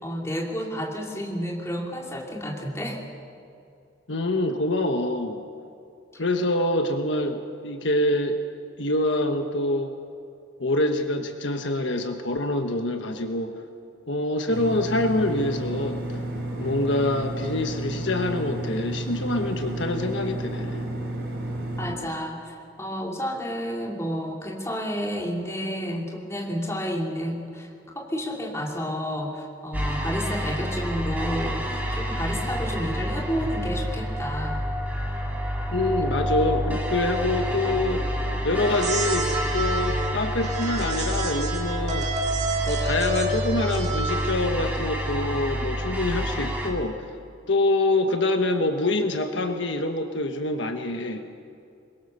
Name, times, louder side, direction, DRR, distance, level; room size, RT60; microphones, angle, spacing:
voice 1, 0.0-3.0 21.8-27.7 27.9-34.6, equal, 15° left, -1 dB, 2.9 m, -30 dB
voice 2, 4.1-5.4 6.2-8.4 8.8-9.9 10.6-13.5 14.1-16.0 16.6-20.8 35.7-38.0 38.4-39.3 39.5-42.1 42.6-47.1 47.5-51.2, left 2 dB, 70° left, 5 dB, 1.4 m, -25 dB
sound 1, 14.5-21.9, right 1 dB, 55° right, 5.0 m, -31 dB
sound 2, 29.7-46.7, equal, 10° right, 2.8 m, -28 dB
sound 3, 38.6-44.5, right 3 dB, 35° right, 2.3 m, -29 dB
24.0 x 21.5 x 6.9 m, 2.4 s
head